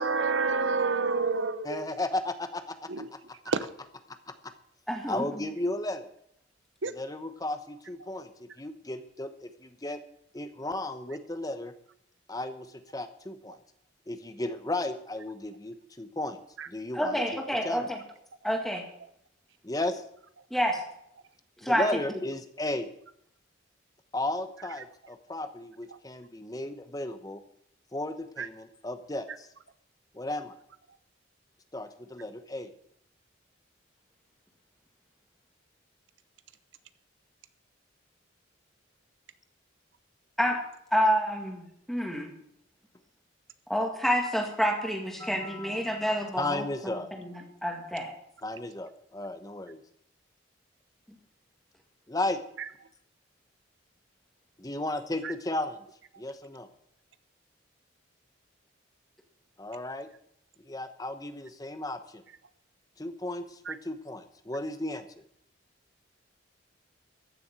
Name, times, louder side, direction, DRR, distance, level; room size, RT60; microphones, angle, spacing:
voice 1, 0.0-1.9 2.9-3.1 3.5-3.7 6.8-6.9 16.6-16.7 28.4-28.5 52.6-52.7 55.2-55.3 63.6-63.8, right 4 dB, 70° right, 0.9 m, -29 dB
voice 2, 1.6-3.2 4.1-4.5 5.1-6.1 6.9-10.0 10.3-11.7 12.3-13.6 14.1-16.4 16.7-17.9 19.6-20.0 21.6-22.9 24.1-27.4 27.9-29.5 30.1-30.6 31.7-32.7 45.2-47.1 48.4-49.8 52.1-52.4 54.6-55.8 56.2-56.7 59.6-60.1 60.6-62.2 63.0-65.1, left 1 dB, 20° left, 0.9 m, -35 dB
voice 3, 4.9-5.2 16.9-18.0 18.4-18.8 20.5-20.8 21.6-21.8 40.4-40.6 40.9-42.3 43.7-46.6 47.2-48.1, equal, ahead, 2.0 m, -28 dB
14.5 x 7.0 x 8.8 m
head